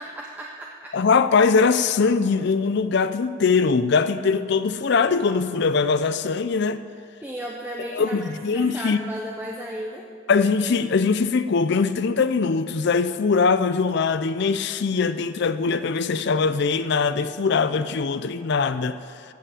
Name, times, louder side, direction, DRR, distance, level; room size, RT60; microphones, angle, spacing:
voice 1, 0.0-0.9 7.2-10.0, equal, 10° right, -1 dB, 0.7 m, -34 dB
voice 2, 0.9-6.8 7.9-9.0 10.3-19.0, left 5 dB, 55° left, 12 dB, 0.4 m, -21 dB
13.5 x 5.9 x 8.4 m, 2.5 s
head